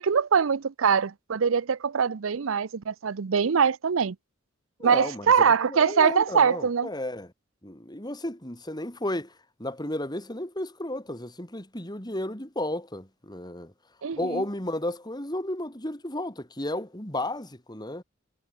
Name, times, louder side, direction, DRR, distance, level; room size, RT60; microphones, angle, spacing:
voice 1, 0.0-4.2 4.8-6.9 14.0-14.4, right 6 dB, 90° right, 0.6 m, -23 dB
voice 2, 4.8-7.3 7.6-9.3 9.6-13.7 14.2-18.0, left 1 dB, 20° left, 4.1 m, -33 dB
head